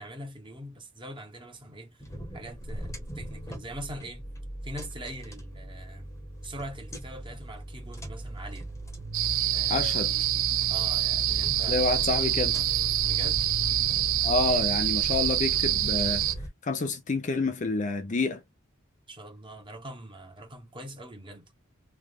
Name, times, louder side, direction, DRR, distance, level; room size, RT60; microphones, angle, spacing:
voice 1, 0.0-2.0 2.3-4.3 4.6-6.1 6.4-8.7 9.5-9.9 10.7-11.8 13.0-13.4 19.1-21.5, right 1 dB, 25° right, 1.1 m, -42 dB
sound 1, 2.0-16.5, left 1 dB, 15° left, 1.1 m, -37 dB
sound 2, 9.1-16.3, right 14 dB, 70° right, 0.4 m, -26 dB
voice 2, 9.7-10.1 11.7-12.6 14.2-16.2 16.6-18.4, left 3 dB, 35° left, 0.5 m, -28 dB
3.3 x 2.4 x 2.5 m
head